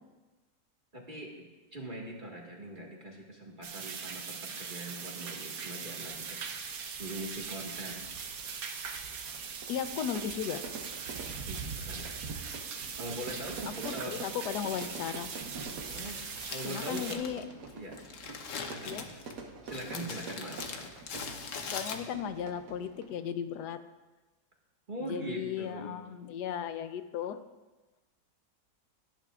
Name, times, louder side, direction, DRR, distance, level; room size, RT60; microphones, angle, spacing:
voice 1, 0.9-6.4 7.0-8.1 11.5-12.3 13.0-14.4 15.9-16.2 16.5-17.2 17.7-18.0 18.6-19.1 19.6-21.3 24.9-26.0, right 1 dB, 30° right, -2 dB, 1.7 m, -42 dB
sound 1, 3.6-17.1, right 6 dB, 65° right, 1.3 m, -40 dB
Fire / Fireworks, 9.3-23.3, right 4 dB, 85° right, 1.8 m, -47 dB
voice 2, 9.7-10.6 13.8-15.3 16.6-17.4 18.8-19.1 21.7-23.8 25.1-27.4, left 9 dB, 90° left, 10 dB, 1.2 m, -36 dB
Crumpling crinkling, 13.8-22.4, left 5 dB, 60° left, 1.1 m, -43 dB
18.0 x 10.0 x 2.4 m, 1.1 s
omnidirectional pair, 1.7 m